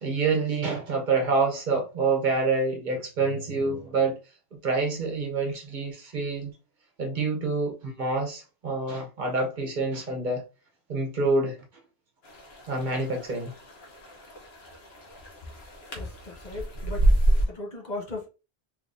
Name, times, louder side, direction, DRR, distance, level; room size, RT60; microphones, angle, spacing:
voice 1, 0.0-4.1 4.6-6.5 7.0-10.4 10.9-11.6 12.7-13.5, right 3 dB, 50° right, 0.9 m, -27 dB
sound 1, 12.2-17.5, right 1 dB, 85° left, 1.1 m, -28 dB
voice 2, 15.9-17.1 17.5-18.3, left 2 dB, 50° left, 0.9 m, -37 dB
3.4 x 3.1 x 2.5 m
omnidirectional pair, 1.0 m